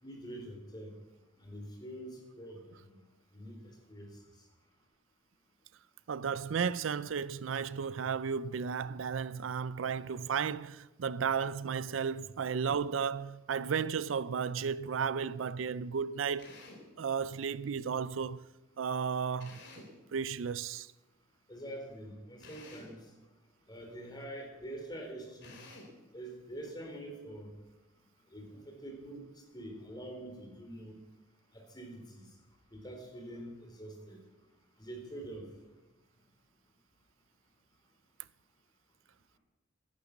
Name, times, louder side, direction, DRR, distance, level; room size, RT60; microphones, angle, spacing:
voice 1, 0.0-0.9 1.4-2.7 3.3-4.1 21.5-23.0 23.7-25.6 26.1-27.5 28.3-29.2 29.5-31.0 31.7-32.2 32.7-34.2 34.8-35.5, right 1 dB, 20° left, 4.0 m, -45 dB
voice 2, 6.1-16.5 17.0-18.4 18.8-19.6 20.1-20.9, right 6 dB, 80° right, 0.4 m, -34 dB
Drill, 16.4-16.9 19.4-20.0 22.4-23.0 25.4-26.0, left 2 dB, 65° left, 3.4 m, -51 dB
14.0 x 11.0 x 7.2 m
head